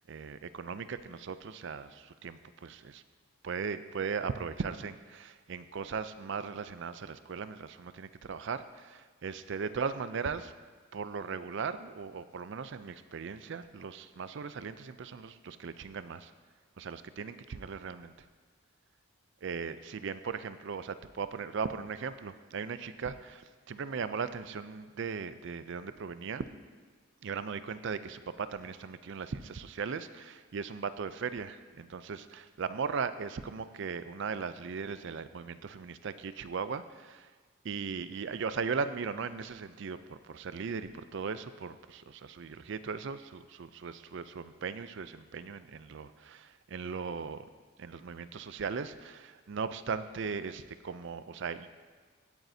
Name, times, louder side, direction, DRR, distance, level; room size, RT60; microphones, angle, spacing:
voice 1, 0.1-3.0 3.4-10.5 10.9-16.3 16.8-18.1 19.4-26.4 27.2-37.3 37.6-47.5 47.8-51.7, right 5 dB, 55° right, 12 dB, 0.4 m, -38 dB
16.5 x 9.1 x 2.7 m, 1.4 s
head